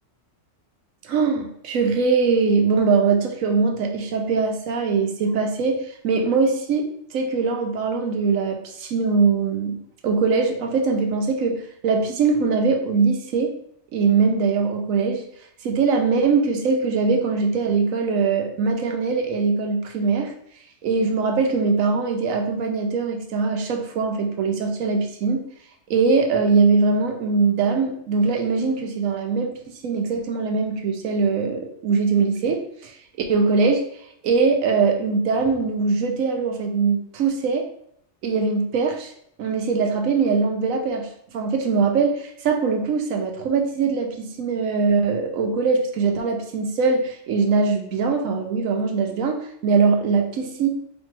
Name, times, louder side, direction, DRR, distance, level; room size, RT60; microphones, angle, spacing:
voice 1, 1.0-9.8 10.0-13.5 13.9-15.2 15.6-20.3 20.8-25.4 25.9-29.5 29.8-32.9 33.3-33.8 34.2-37.7 38.2-39.1 39.4-41.1 41.3-50.7, right 4 dB, 90° right, 4 dB, 1.1 m, -22 dB
4.4 x 3.2 x 3.2 m, 0.69 s
omnidirectional pair, 1.4 m